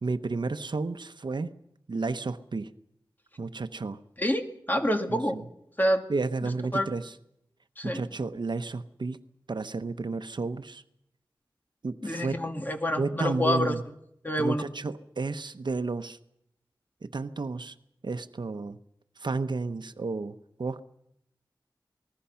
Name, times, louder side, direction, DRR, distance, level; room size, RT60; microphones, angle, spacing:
voice 1, 0.0-1.5 1.9-2.7 3.4-4.0 5.1-5.4 6.1-7.1 7.8-9.2 9.5-10.8 11.8-12.4 13.0-13.8 14.4-16.2 17.0-17.7 18.0-18.8 19.2-20.8, right 3 dB, 70° right, 10 dB, 0.9 m, -32 dB
voice 2, 4.7-5.4 5.8-6.1 6.4-6.9 7.8-8.0 12.0-13.8 14.2-14.7, equal, 25° left, 5 dB, 2.2 m, -27 dB
27.5 x 20.0 x 5.8 m, 0.77 s
wide cardioid pair, 75°, 8 cm